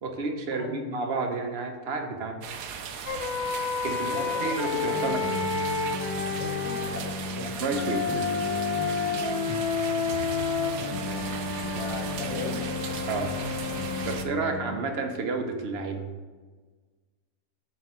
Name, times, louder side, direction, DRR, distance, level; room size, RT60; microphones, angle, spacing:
voice 1, 0.0-2.4 3.8-5.4 7.6-8.2 13.1-13.3 14.0-16.0, right 3 dB, 50° right, 5 dB, 0.9 m, -31 dB
voice 2, 0.5-0.8 4.0-4.8 6.4-7.7 8.3-8.6 10.8-12.7, left 3 dB, 55° left, 0 dB, 1.5 m, -38 dB
sound 1, 2.4-14.2, right 7 dB, 75° right, 1.1 m, -37 dB
sound 2, 3.1-6.9 7.7-14.2, left 6 dB, 80° left, 1.4 m, -31 dB
sound 3, 4.9-14.8, left 1 dB, 15° left, 0.6 m, -36 dB
8.5 x 3.4 x 6.0 m, 1.4 s
omnidirectional pair, 1.6 m